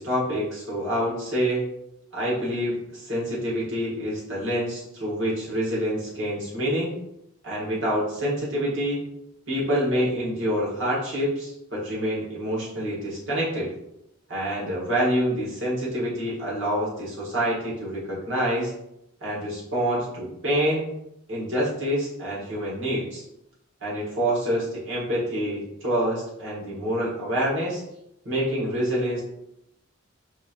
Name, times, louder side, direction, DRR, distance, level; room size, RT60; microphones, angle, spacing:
voice 1, 0.0-1.6 2.1-6.9 7.4-9.0 9.5-13.7 14.3-18.7 19.2-20.9 21.3-23.2 23.8-27.8 28.2-29.2, equal, 65° right, -6 dB, 1.5 m, -27 dB
4.1 x 3.0 x 2.5 m, 0.82 s
head